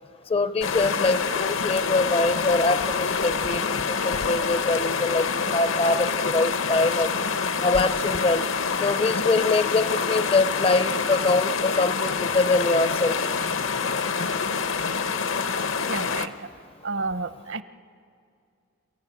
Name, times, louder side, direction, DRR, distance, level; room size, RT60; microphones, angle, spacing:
voice 1, 0.3-3.8 4.0-7.1 7.6-8.4 8.8-13.2, left 3 dB, 25° left, 13 dB, 0.5 m, -24 dB
sound 1, 0.6-16.3, left 5 dB, 70° left, 0.8 m, -26 dB
voice 2, 15.9-16.5 16.8-17.6, right 3 dB, 60° right, 12 dB, 0.8 m, -31 dB
28.0 x 15.0 x 9.8 m, 2.4 s
head